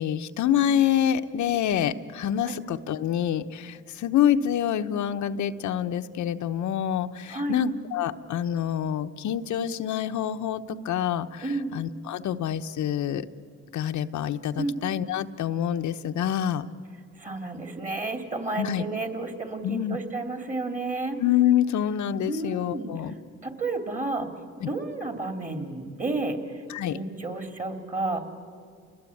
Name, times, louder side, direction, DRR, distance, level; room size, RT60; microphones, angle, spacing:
voice 1, 0.0-11.5 11.7-13.3 13.7-16.6 18.6-18.8 19.6-20.0 21.2-23.1 24.6-24.7 26.7-27.0, left 10 dB, 70° left, 9 dB, 0.9 m, -26 dB
voice 2, 11.4-11.8 14.6-14.8 17.2-21.2 22.3-22.9 23.4-24.3 24.6-26.4 26.9-28.2, right 2 dB, 25° right, 6 dB, 2.8 m, -31 dB
29.5 x 20.5 x 8.5 m, 2.2 s
cardioid pair, 90°, 30 cm